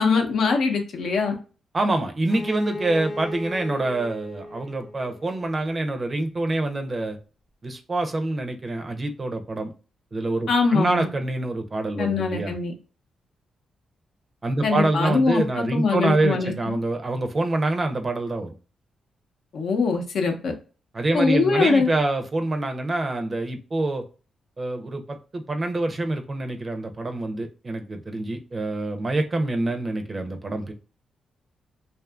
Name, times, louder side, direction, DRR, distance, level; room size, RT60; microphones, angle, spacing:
voice 1, 0.0-1.4 10.5-11.1 12.0-12.7 14.6-16.8 19.5-20.5 21.1-21.9, left 4 dB, 70° left, 4 dB, 0.6 m, -22 dB
voice 2, 1.7-7.2 7.6-9.7 10.1-12.5 14.4-18.5 20.9-24.0 24.6-30.7, right 2 dB, 35° right, 5 dB, 0.5 m, -26 dB
Bowed string instrument, 2.3-5.9, left 1 dB, 35° left, 0.7 m, -37 dB
2.7 x 2.4 x 2.2 m, 0.36 s
cardioid pair, 70°, 0 cm